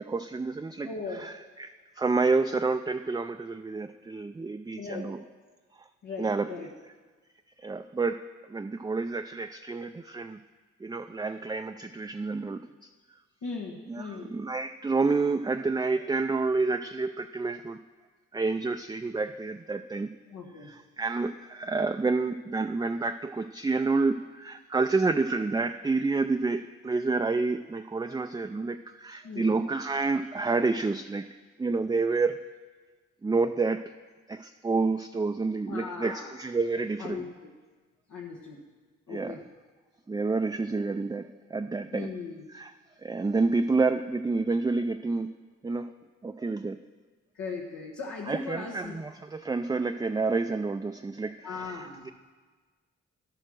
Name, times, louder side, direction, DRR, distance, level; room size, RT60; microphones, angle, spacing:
voice 1, 0.0-1.7 2.0-5.2 6.2-6.5 7.6-8.2 8.5-10.4 10.8-12.9 13.9-17.8 18.3-20.1 20.6-31.3 31.6-32.4 33.2-33.8 34.3-37.2 39.1-39.4 40.1-42.1 42.5-42.7 43.0-45.3 45.6-45.9 46.2-46.8 48.3-52.1, right 3 dB, 15° right, 7 dB, 0.4 m, -29 dB
voice 2, 0.8-1.2 4.8-5.1 6.0-6.7 13.4-14.3 20.3-20.7 29.2-29.6 35.7-36.3 37.0-37.3 38.1-38.6 39.1-39.4 41.9-42.4 47.3-49.0 51.4-52.1, left 4 dB, 80° left, -3 dB, 1.3 m, -38 dB
11.5 x 6.7 x 6.2 m, 1.4 s
supercardioid pair, 50°, 30 cm